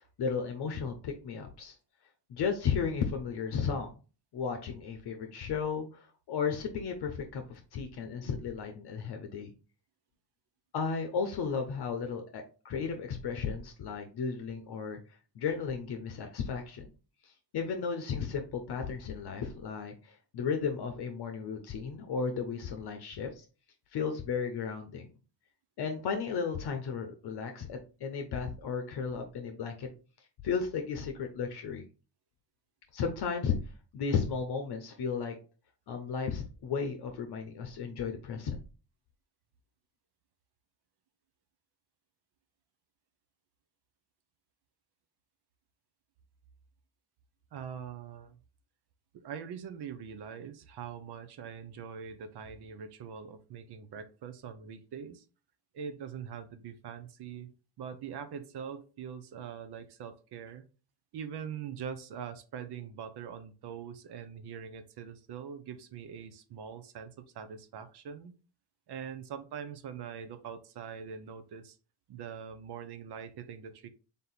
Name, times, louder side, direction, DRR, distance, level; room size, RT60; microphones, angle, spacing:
voice 1, 0.0-1.8 2.3-3.9 4.3-9.5 10.7-15.0 15.3-16.8 17.2-23.4 23.9-25.1 25.8-29.9 30.4-31.8 32.9-33.5 33.9-35.3 35.9-38.6, left 6 dB, 55° left, 5 dB, 0.8 m, -34 dB
voice 2, 47.5-48.4 49.2-55.2 55.7-60.6 61.1-68.3 68.9-71.8 72.1-73.9, right 7 dB, 60° right, 11 dB, 0.7 m, -43 dB
3.5 x 2.7 x 4.0 m, 0.35 s
supercardioid pair, 75°, 46 cm